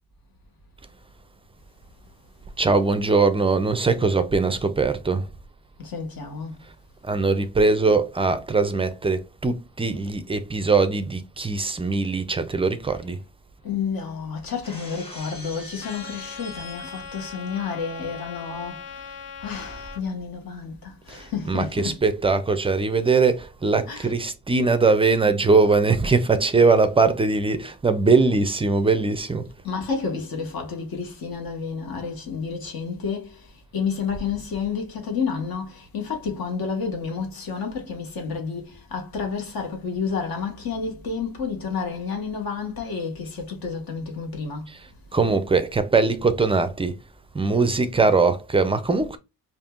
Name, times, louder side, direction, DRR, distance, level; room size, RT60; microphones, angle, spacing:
voice 1, 2.6-5.3 7.0-13.2 21.1-29.5 44.7-44.8 45.1-47.0 47.3-49.2, right 4 dB, 15° right, 0.4 m, -21 dB
voice 2, 5.8-6.7 13.6-22.0 23.9-24.1 29.6-44.7, left 5 dB, 65° left, 1.5 m, -30 dB
Shatter, 14.6-17.4, left 1 dB, 15° left, 1.6 m, -42 dB
Trumpet, 15.8-20.0, left 7 dB, 40° left, 0.5 m, -40 dB
5.2 x 2.6 x 2.4 m
wide cardioid pair, 145°, 38 cm